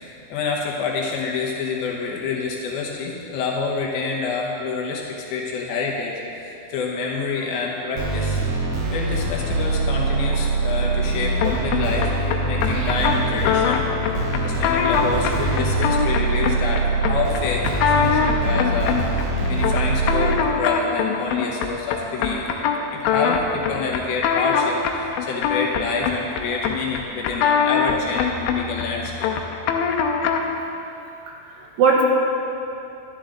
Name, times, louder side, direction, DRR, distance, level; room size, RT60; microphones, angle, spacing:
voice 1, 0.0-8.4 8.9-12.1 12.4-17.6 17.9-19.1 19.5-22.5 22.9-29.3, left 4 dB, 70° left, -2 dB, 2.5 m, -27 dB
sound 1, 8.0-20.4, right 3 dB, 65° right, 2.0 m, -23 dB
sound 2, 11.4-30.6, left 6 dB, 85° left, 3.0 m, -23 dB
voice 2, 31.3-32.0, right 5 dB, 80° right, -2 dB, 3.7 m, -21 dB
12.0 x 11.0 x 3.8 m, 2.8 s
omnidirectional pair, 5.3 m